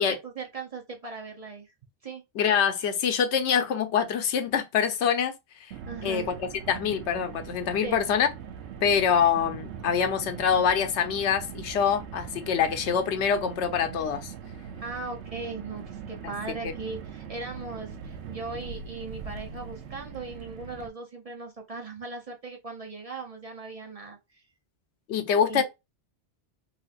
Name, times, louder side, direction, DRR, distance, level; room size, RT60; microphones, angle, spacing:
voice 1, 0.0-1.7 2.0-2.2 5.9-6.3 7.8-8.0 14.8-24.4 25.5-25.6, right 4 dB, 45° right, 0.5 m, -38 dB
voice 2, 2.4-5.4 6.0-8.3 8.8-14.3 16.6-16.7 25.1-25.6, left 7 dB, 90° left, 0.9 m, -25 dB
Car, 5.7-20.9, right 7 dB, 90° right, 0.9 m, -41 dB
3.2 x 2.8 x 2.3 m
omnidirectional pair, 1.1 m